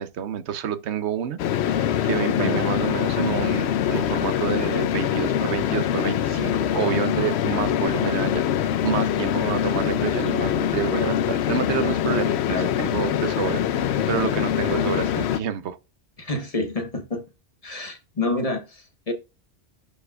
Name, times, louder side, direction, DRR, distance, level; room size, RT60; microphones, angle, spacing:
voice 1, 0.0-15.8, right 9 dB, 80° right, 1.0 m, -29 dB
sound 1, 1.4-15.4, left 10 dB, 75° left, 0.8 m, -24 dB
voice 2, 2.0-2.7 12.5-12.8 16.2-17.2 17.6-19.1, left 2 dB, 35° left, 1.1 m, -29 dB
11.5 x 4.7 x 2.3 m
omnidirectional pair, 1.1 m